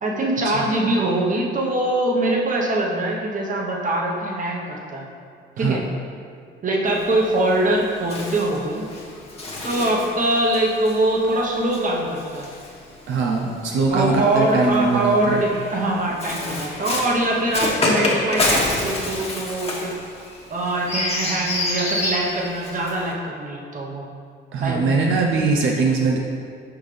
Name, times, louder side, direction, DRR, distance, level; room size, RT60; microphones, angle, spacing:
voice 1, 0.0-5.1 5.6-5.8 6.6-8.9 9.6-12.5 13.9-20.0 20.5-24.1 24.6-24.8, right 1 dB, 40° right, -1 dB, 1.0 m, -23 dB
Bird, 6.9-13.4 14.3-23.1, left 2 dB, 30° left, 1.2 m, -28 dB
voice 2, 13.1-15.4 24.5-26.2, right 4 dB, 80° right, 0 dB, 0.6 m, -21 dB
5.7 x 5.5 x 3.3 m, 2.2 s
cardioid pair, 90°, 20 cm